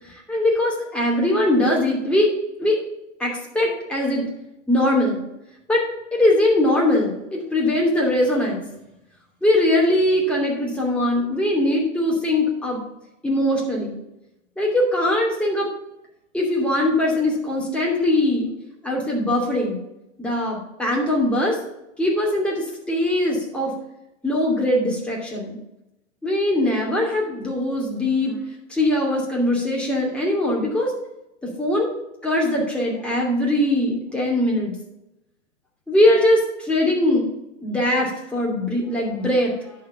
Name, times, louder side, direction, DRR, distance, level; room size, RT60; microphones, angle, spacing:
voice 1, 0.1-2.3 2.6-2.8 3.2-4.3 4.7-5.2 5.7-5.8 6.1-8.6 9.4-12.8 13.2-14.0 14.6-15.7 16.3-18.5 18.8-19.8 20.2-21.6 22.0-23.7 24.2-25.6 26.2-28.4 28.7-30.9 31.4-31.9 32.2-34.7 35.9-37.3 37.6-39.7, left 1 dB, 5° left, -4 dB, 2.7 m, -21 dB
10.5 x 4.6 x 5.7 m, 0.90 s
figure-of-eight pair, 105°, 38 cm